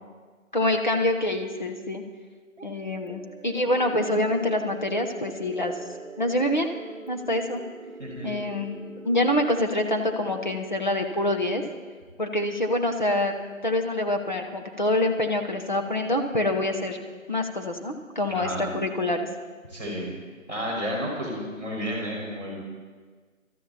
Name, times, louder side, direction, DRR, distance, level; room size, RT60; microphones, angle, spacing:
voice 1, 0.5-2.0 2.6-5.7 6.2-6.7 7.1-7.6 8.2-8.7 9.0-11.6 12.2-13.3 13.6-17.0 17.3-19.3, left 1 dB, 35° left, 3 dB, 0.9 m, -26 dB
sound 1, 2.6-10.6, right 4 dB, 60° right, 1.0 m, -43 dB
voice 2, 8.0-8.3 18.3-18.6 19.7-20.1 20.5-22.5, equal, 10° left, -11 dB, 4.1 m, -31 dB
17.0 x 13.0 x 4.3 m, 1.5 s
figure-of-eight pair, 170°, 41 cm